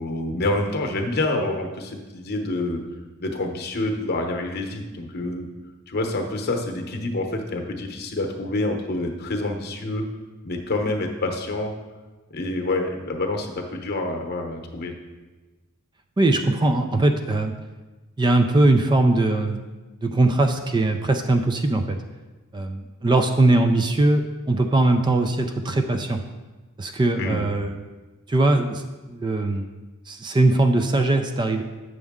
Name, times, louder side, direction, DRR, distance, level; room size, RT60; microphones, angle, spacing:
voice 1, 0.0-2.8 3.2-5.5 5.9-10.1 10.4-11.7 12.3-14.9 27.2-27.4, left 2 dB, 45° left, 3 dB, 0.9 m, -27 dB
voice 2, 16.2-17.5 18.2-19.6 20.0-22.0 22.5-26.2 26.8-27.9 28.3-29.7 30.1-31.6, right 2 dB, 20° right, 6 dB, 0.4 m, -21 dB
8.1 x 6.3 x 3.6 m, 1.2 s
head